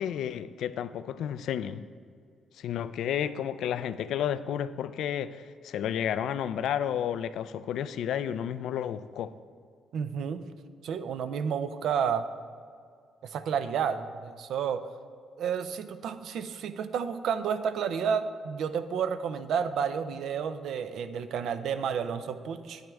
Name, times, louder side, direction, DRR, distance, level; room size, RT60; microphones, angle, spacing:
voice 1, 0.0-1.8 2.6-9.3, left 9 dB, 80° left, 13 dB, 0.3 m, -31 dB
voice 2, 9.9-10.4 10.8-12.3 13.2-14.8 15.4-22.8, right 7 dB, 75° right, 11 dB, 0.5 m, -31 dB
9.1 x 9.1 x 3.5 m, 2.2 s
cardioid pair, 90°, 0 cm